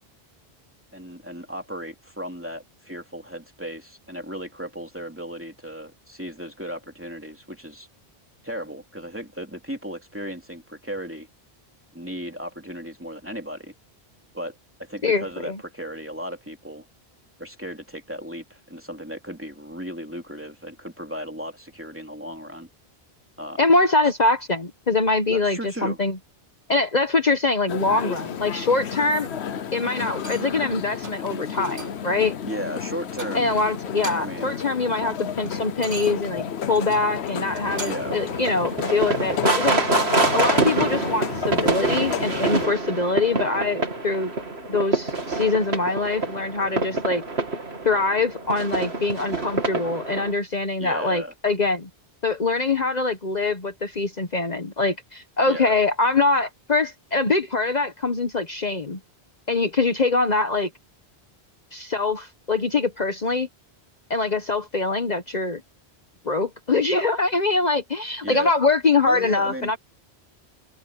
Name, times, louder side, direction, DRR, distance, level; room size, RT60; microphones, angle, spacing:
voice 1, 0.9-7.9 8.4-11.3 11.9-13.7 14.3-16.8 17.4-22.7 23.4-23.7 25.3-26.0 32.4-33.5 34.2-34.6 34.9-35.0 37.8-38.2 50.8-51.3 55.5-55.7 68.2-68.5 69.0-69.7, equal, 10° right, 3.0 m, -35 dB
voice 2, 15.0-15.6 23.6-26.2 26.7-29.3 29.7-32.3 33.3-39.8 40.3-44.3 44.7-47.2 47.8-51.9 52.2-59.0 59.5-60.7 61.7-63.5 64.1-65.6 66.2-69.8, left 3 dB, 40° left, 1.3 m, -23 dB
sound 1, 27.7-42.7, left 8 dB, 75° left, 1.1 m, -32 dB
sound 2, 30.2-30.6 31.0-31.3 31.6-32.1 32.5-32.7 33.1-33.6 33.9-34.5 34.8-38.2 38.7-38.8, right 2 dB, 50° right, 5.4 m, -40 dB
sound 3, 37.6-50.3, right 2 dB, 75° right, 3.0 m, -26 dB
omnidirectional pair, 1.1 m